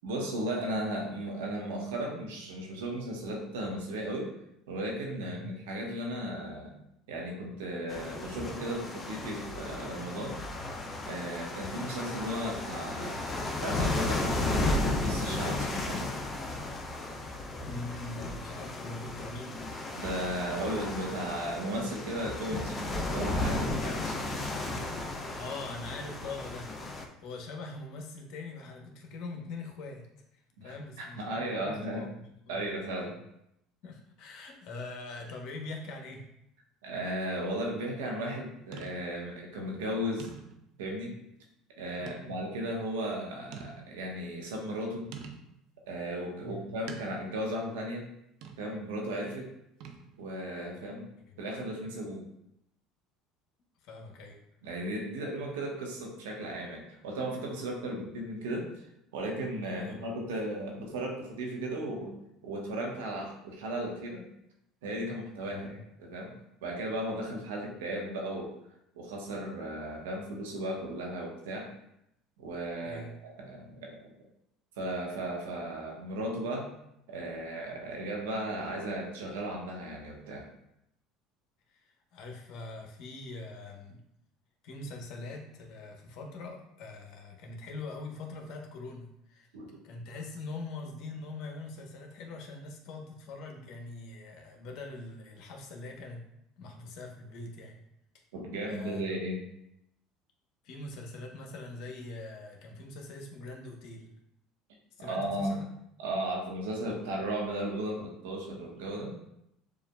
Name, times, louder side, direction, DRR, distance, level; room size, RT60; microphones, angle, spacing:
voice 1, 0.0-4.3 4.7-6.7 7.1-10.4 11.0-13.3 13.6-16.1 20.0-24.5 30.6-32.1 32.5-33.2 36.8-40.3 40.8-41.1 41.8-45.1 45.9-48.0 48.6-49.5 50.2-51.1 51.4-52.2 54.6-58.9 59.1-62.1 62.4-64.2 64.8-66.3 66.6-68.5 68.9-71.7 72.4-74.1 74.8-76.7 77.1-80.5 89.5-89.7 98.3-99.4 105.0-105.6 106.0-109.2, right 1 dB, 90° right, 0 dB, 0.9 m, -35 dB
sound 1, 7.9-27.1, left 2 dB, 30° left, 0.6 m, -34 dB
voice 2, 17.6-19.6 25.3-26.7 27.2-30.1 30.3-32.6 33.8-36.3 42.0-42.4 46.4-46.7 50.7-50.9 53.8-54.4 59.8-60.0 65.5-65.8 72.8-73.2 81.7-84.0 84.6-89.5 89.8-96.2 96.6-97.8 98.7-99.0 100.6-104.1 105.0-105.7, left 3 dB, 65° left, 2 dB, 0.8 m, -43 dB
sound 2, 37.6-37.8 38.7-39.3 39.8-39.9 40.2-40.8 42.1-42.4 42.9-43.0 43.5-44.1 45.1-45.6 46.9-47.4 48.4-48.8 49.8-50.3, right 6 dB, 70° right, 0.5 m, -46 dB
6.9 x 2.5 x 2.2 m, 0.79 s
supercardioid pair, 90°, 0 cm